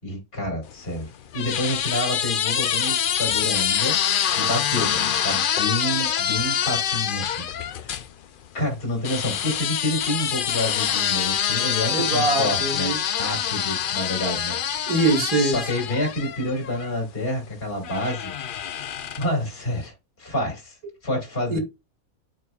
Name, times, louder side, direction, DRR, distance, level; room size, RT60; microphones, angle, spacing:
voice 1, 0.0-4.0 4.4-7.5 8.5-12.9 13.2-14.9 15.3-18.3 19.2-20.8 21.0-21.6, left 1 dB, 45° left, 2.6 m, -28 dB
sound 1, 0.7-8.1 9.0-17.0 17.8-19.4, left 9 dB, 70° left, 0.5 m, -25 dB
voice 2, 11.9-13.0 14.9-15.6 21.5-21.6, right 2 dB, 75° right, 2.2 m, -22 dB
11.0 x 4.8 x 2.3 m
omnidirectional pair, 1.5 m